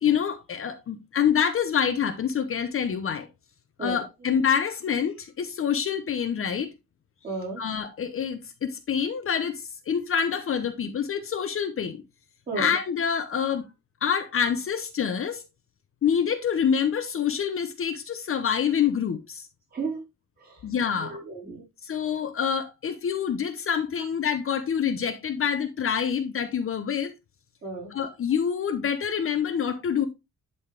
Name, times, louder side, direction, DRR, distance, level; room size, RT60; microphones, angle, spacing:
voice 1, 0.0-3.3 3.8-6.7 7.6-12.0 12.6-13.6 14.0-15.4 16.0-19.5 20.6-21.2 21.8-27.1 27.9-30.1, left 7 dB, 45° left, 0.8 m, -26 dB
voice 2, 7.2-7.6 12.5-12.7 19.7-20.0 20.4-20.6 21.0-21.6 27.6-27.9, right 3 dB, 30° right, 3.9 m, -33 dB
11.0 x 4.3 x 3.4 m
wide cardioid pair, 160°, 31 cm